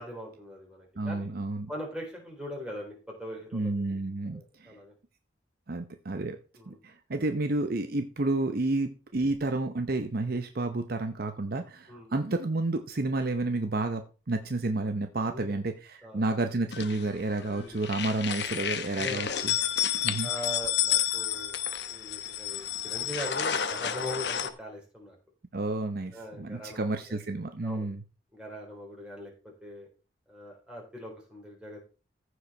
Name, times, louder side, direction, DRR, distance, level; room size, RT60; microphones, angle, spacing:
voice 1, 0.0-1.3 1.7-4.0 4.3-4.9 6.6-6.8 11.9-12.1 15.3-15.6 16.0-16.2 17.5-17.8 19.0-19.4 20.2-21.6 21.8-25.2 26.1-27.2 27.6-27.9 28.3-29.3 29.6-29.9 30.3-31.8, left 1 dB, 5° right, -2 dB, 4.0 m, -41 dB
voice 2, 1.0-1.7 3.5-4.8 5.7-6.4 6.7-19.6 20.0-20.3 25.5-28.0, right 2 dB, 55° right, 7 dB, 0.8 m, -30 dB
sound 1, 16.7-17.5 17.8-24.5, left 9 dB, 65° left, 0.9 m, -30 dB
14.5 x 4.9 x 4.4 m, 0.34 s
head